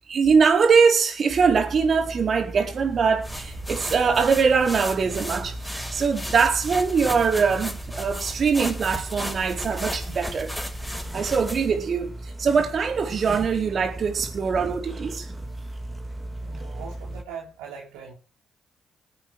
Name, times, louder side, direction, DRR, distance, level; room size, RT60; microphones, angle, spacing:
voice 1, 0.1-10.5 11.1-15.3, right 5 dB, 55° right, 4.5 m, -22 dB
sound 1, 1.3-17.2, right 1 dB, 25° right, 3.5 m, -37 dB
Foley - Feet shuffling and sweeping on carpet, 3.2-11.8, equal, ahead, 5.1 m, -35 dB
voice 2, 16.4-18.1, right 6 dB, 85° right, 3.1 m, -40 dB
20.5 x 8.8 x 6.3 m
hypercardioid pair, 45°, 0 cm